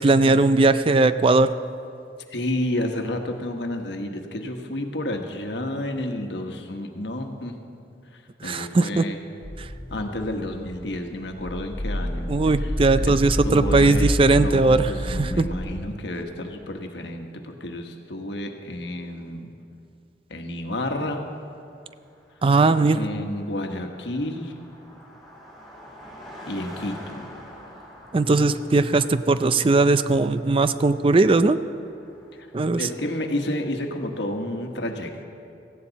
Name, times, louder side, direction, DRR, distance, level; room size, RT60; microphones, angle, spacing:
voice 1, 0.0-1.5 8.4-9.0 9.6-9.7 12.3-15.5 22.4-23.0 28.1-31.6 32.5-32.9, right 3 dB, 30° right, 12 dB, 0.4 m, -19 dB
voice 2, 2.3-7.6 8.1-9.2 9.9-13.2 13.4-19.5 20.3-21.3 22.9-24.5 26.4-27.3 32.4-32.5 32.8-35.2, left 1 dB, 80° left, 4 dB, 1.3 m, -31 dB
sound 1, 9.4-15.8, equal, 40° left, 1.2 m, -29 dB
Car passing by, 21.7-32.7, equal, ahead, 3.0 m, -46 dB
17.0 x 15.5 x 4.1 m, 2.5 s
head